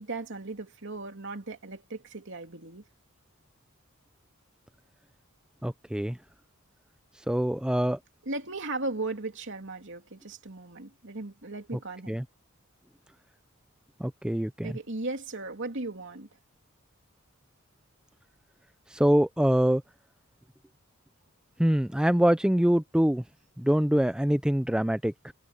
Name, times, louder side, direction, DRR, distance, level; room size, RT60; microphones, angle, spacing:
voice 1, 0.0-2.9 8.2-12.2 14.6-16.3, right 2 dB, 60° right, 2.8 m, -37 dB
voice 2, 5.6-6.2 7.3-8.0 12.1-12.2 14.0-14.8 18.9-19.8 21.6-23.2 23.6-25.3, equal, 5° right, 0.5 m, -24 dB
head